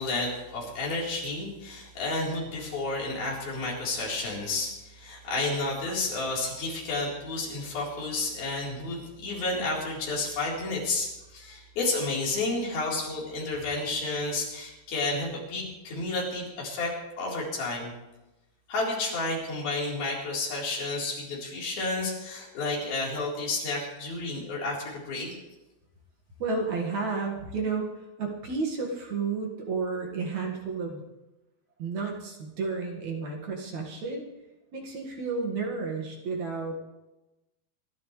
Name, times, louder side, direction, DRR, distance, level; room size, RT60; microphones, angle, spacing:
voice 1, 0.0-17.9 18.7-25.3, left 2 dB, 65° left, -4 dB, 5.9 m, -31 dB
voice 2, 26.4-27.9 28.2-31.0 31.8-34.2 34.7-36.8, right 4 dB, 50° right, 0 dB, 2.9 m, -31 dB
27.0 x 12.0 x 3.3 m, 1.0 s
omnidirectional pair, 4.6 m